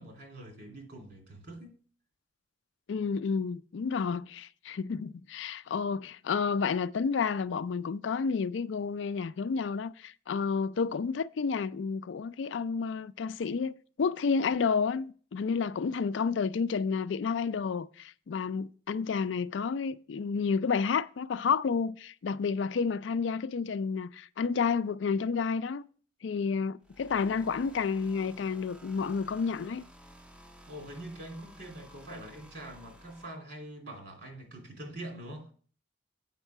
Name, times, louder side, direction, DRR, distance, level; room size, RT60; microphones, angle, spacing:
voice 1, 0.0-1.8 30.7-35.5, right 1 dB, 60° right, 3.1 m, -44 dB
voice 2, 2.9-25.8 26.2-29.8, left 5 dB, 75° left, 0.4 m, -30 dB
sound 1, 26.8-33.3, equal, 5° right, 0.5 m, -54 dB
8.2 x 5.4 x 5.8 m
head